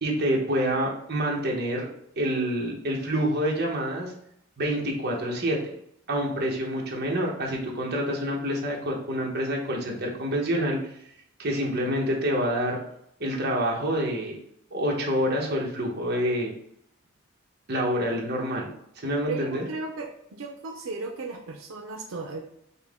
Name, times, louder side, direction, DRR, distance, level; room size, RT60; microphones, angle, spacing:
voice 1, 0.0-1.9 2.2-4.1 4.6-5.7 6.1-10.8 11.4-12.8 13.2-14.4 14.7-16.5 17.7-18.7 19.0-19.6, equal, 50° right, -1 dB, 1.0 m, -27 dB
voice 2, 19.2-22.4, right 3 dB, 85° right, 2 dB, 0.5 m, -35 dB
5.5 x 2.1 x 3.5 m, 0.73 s
head